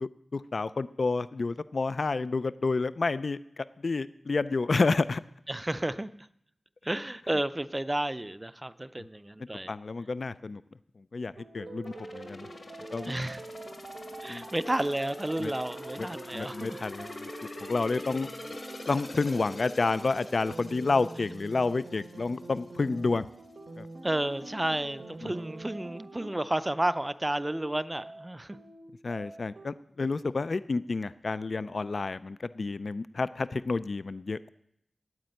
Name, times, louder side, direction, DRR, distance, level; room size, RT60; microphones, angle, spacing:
voice 1, 0.0-5.2 9.7-10.6 11.1-12.5 12.9-13.1 14.3-14.4 15.4-15.5 16.0-16.1 16.3-17.3 17.6-18.3 18.9-23.3 23.8-23.9 25.2-25.3 29.0-34.5, left 3 dB, 65° left, 16 dB, 0.4 m, -30 dB
voice 2, 5.5-6.1 6.8-9.7 13.0-13.4 14.2-16.8 24.0-28.6, right 1 dB, 20° right, 14 dB, 0.5 m, -31 dB
sound 1, 11.4-29.7, right 2 dB, 90° right, 1.3 m, -45 dB
sound 2, 11.8-22.6 23.0-23.1, left 2 dB, 50° left, 1.5 m, -46 dB
9.5 x 8.6 x 9.0 m, 0.74 s
wide cardioid pair, 90°, 0 cm